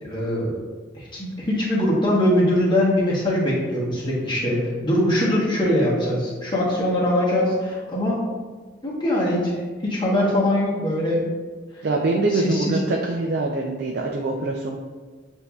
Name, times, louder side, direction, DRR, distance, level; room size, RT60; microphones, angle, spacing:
voice 1, 0.0-0.6 0.9-8.2 8.8-11.2 12.3-12.8, left 1 dB, 25° left, -6 dB, 1.1 m, -22 dB
voice 2, 11.8-14.8, right 2 dB, 55° right, 0 dB, 0.4 m, -24 dB
7.4 x 2.7 x 2.3 m, 1.4 s
head